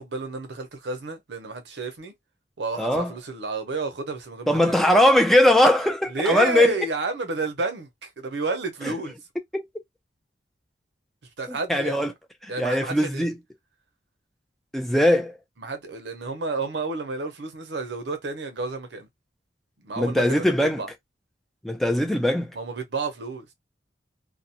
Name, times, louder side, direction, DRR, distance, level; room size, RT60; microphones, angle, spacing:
voice 1, 0.0-2.1 2.6-4.8 6.1-9.2 11.4-12.1 12.5-13.3 15.6-19.1 19.8-20.9 22.5-23.5, right 3 dB, 70° right, 0.7 m, -31 dB
voice 2, 2.8-3.1 4.5-6.8 8.8-8.9 9.5-9.7 11.5-12.1 12.4-13.3 14.7-15.4 20.0-20.8 21.6-22.5, left 1 dB, ahead, 0.3 m, -20 dB
2.4 x 2.0 x 2.7 m
head